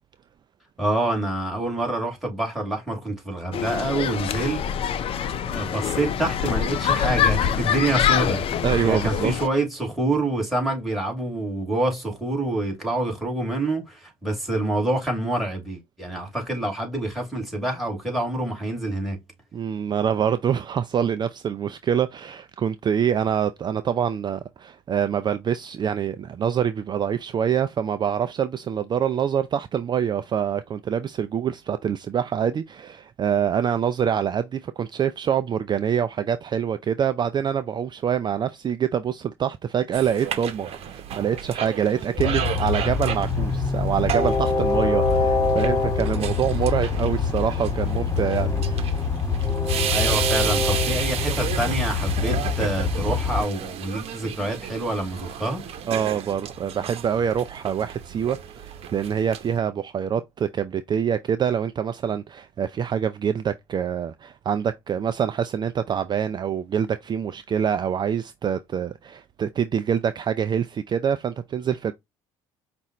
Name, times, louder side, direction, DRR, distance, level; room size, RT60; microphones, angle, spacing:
voice 1, 0.8-4.9 5.4-8.4 8.8-19.2 49.9-55.7, right 2 dB, ahead, 2.9 m, -27 dB
sound 1, 3.5-9.5, left 8 dB, 50° left, 0.7 m, -25 dB
voice 2, 8.6-9.3 19.5-49.0 55.9-71.9, right 8 dB, 40° right, 0.5 m, -25 dB
sound 2, 39.9-59.6, right 9 dB, 55° right, 1.0 m, -33 dB
Train, 42.2-53.4, left 4 dB, 20° left, 1.8 m, -24 dB
5.4 x 2.5 x 3.0 m
supercardioid pair, 80°, 12 cm